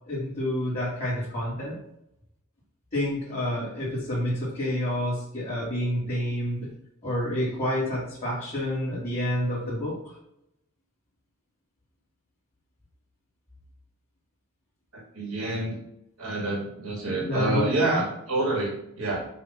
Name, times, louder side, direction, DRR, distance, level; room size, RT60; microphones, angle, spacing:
voice 1, 0.1-1.8 2.9-6.7 7.0-10.1 17.3-18.0, left 1 dB, 35° left, -10 dB, 2.7 m, -29 dB
voice 2, 14.9-15.8 16.2-19.2, right 2 dB, 80° right, -1 dB, 2.3 m, -28 dB
7.4 x 2.9 x 6.0 m, 0.79 s
head